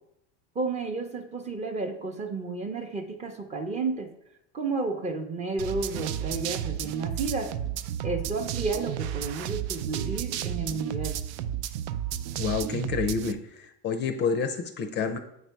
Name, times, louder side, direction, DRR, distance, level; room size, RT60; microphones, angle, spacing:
voice 1, 0.5-4.1 4.5-7.5 8.0-11.2, right 3 dB, 20° right, 5 dB, 0.6 m, -32 dB
sound 1, 5.6-13.3, right 10 dB, 75° right, 0.5 m, -32 dB
voice 2, 12.4-15.2, left 5 dB, 30° left, 8 dB, 0.5 m, -29 dB
8.2 x 4.0 x 4.6 m, 0.80 s
supercardioid pair, 150°, 34 cm